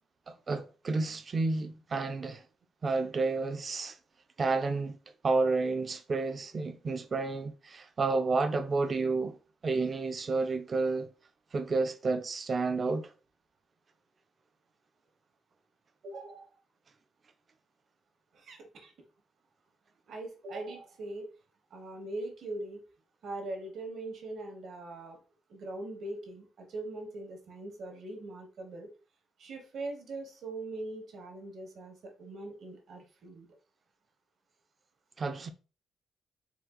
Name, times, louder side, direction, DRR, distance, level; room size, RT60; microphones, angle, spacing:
voice 1, 0.3-2.4 2.8-3.9 4.4-5.0 5.2-9.4 9.6-11.1 11.5-13.1 35.2-35.5, right 3 dB, 35° right, 0.4 m, -30 dB
voice 2, 16.0-16.6 18.3-18.9 20.1-21.3 21.7-22.8 23.2-25.2 25.5-28.9 29.4-33.5, right 2 dB, 65° right, 1.4 m, -41 dB
4.3 x 2.4 x 3.8 m
cardioid pair, 130°, 0 cm